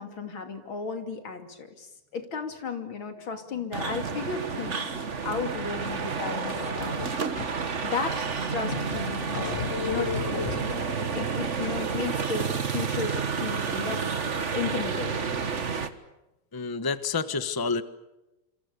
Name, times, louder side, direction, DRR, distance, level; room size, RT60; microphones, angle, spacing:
voice 1, 0.0-4.9 5.2-7.0 7.8-14.0 14.5-15.3, left 5 dB, 85° left, 6 dB, 3.6 m, -34 dB
sound 1, 3.7-15.9, right 5 dB, 40° right, 1.7 m, -30 dB
sound 2, 6.1-7.5 8.0-8.1 8.5-11.0, left 7 dB, 45° left, 1.2 m, -35 dB
voice 2, 16.5-17.8, left 4 dB, 15° left, 12 dB, 1.0 m, -28 dB
27.0 x 27.0 x 6.9 m, 0.97 s
omnidirectional pair, 2.1 m